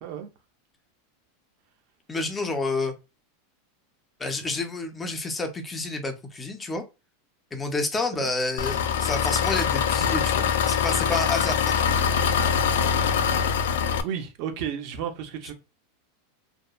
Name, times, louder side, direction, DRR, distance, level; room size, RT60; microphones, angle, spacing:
voice 1, 2.1-2.9 4.2-6.8 7.5-12.0, left 3 dB, 10° left, 0.5 m, -29 dB
Engine, 8.6-14.0, left 7 dB, 90° left, 0.3 m, -23 dB
voice 2, 14.0-15.5, right 8 dB, 45° right, 0.6 m, -32 dB
2.7 x 2.1 x 2.3 m
supercardioid pair, 160°, 0 cm